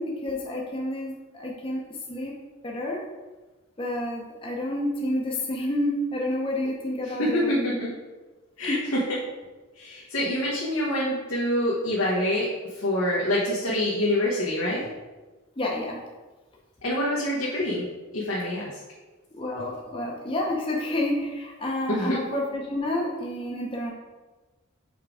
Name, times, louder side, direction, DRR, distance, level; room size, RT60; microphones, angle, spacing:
voice 1, 0.0-1.8 2.1-2.3 2.6-3.0 3.8-7.8 8.7-8.8 15.6-16.0 19.3-23.9, left 1 dB, 25° left, -2 dB, 0.8 m, -29 dB
voice 2, 7.0-7.9 8.6-9.0 9.7-12.5 12.8-14.9 16.8-17.8 18.1-18.7 21.9-22.2, left 1 dB, 85° left, -6 dB, 1.3 m, -26 dB
5.7 x 3.7 x 4.9 m, 1.2 s
head